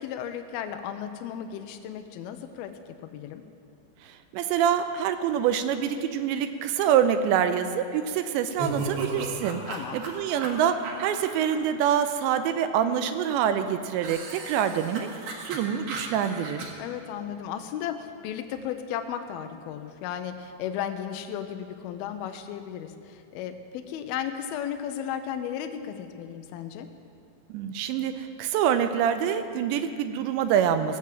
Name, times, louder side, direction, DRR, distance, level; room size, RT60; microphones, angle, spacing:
voice 1, 0.0-2.7 3.0-3.4 9.7-10.0 16.8-26.9, left 9 dB, 85° left, 7 dB, 2.2 m, -35 dB
voice 2, 4.0-15.1 15.4-16.7 27.5-31.0, right 9 dB, 85° right, 9 dB, 2.9 m, -26 dB
sound 1, 8.5-11.5 14.0-16.7, right 3 dB, 65° right, 3.0 m, -35 dB
18.5 x 7.6 x 7.5 m, 2.4 s
omnidirectional pair, 5.2 m